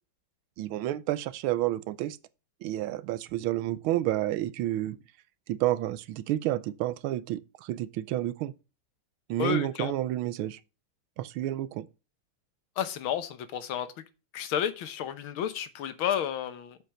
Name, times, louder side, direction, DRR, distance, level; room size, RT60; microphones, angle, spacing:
voice 1, 0.6-2.2 2.6-5.0 5.5-8.5 9.3-10.6 11.2-11.9, right 14 dB, 85° right, 1.4 m, -30 dB
voice 2, 9.4-9.9 12.8-13.9 14.3-16.8, left 9 dB, 75° left, 1.8 m, -31 dB
7.7 x 5.1 x 6.2 m
omnidirectional pair, 2.3 m